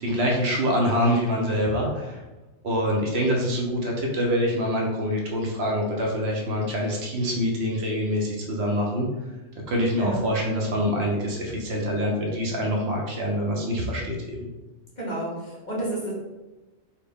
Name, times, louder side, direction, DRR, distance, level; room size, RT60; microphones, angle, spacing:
voice 1, 0.0-2.2 2.6-9.1 9.7-14.5, equal, 65° right, -1 dB, 0.8 m, -25 dB
voice 2, 15.0-16.1, right 1 dB, 40° left, -5 dB, 0.9 m, -30 dB
4.1 x 2.1 x 3.3 m, 1.1 s
omnidirectional pair, 1.3 m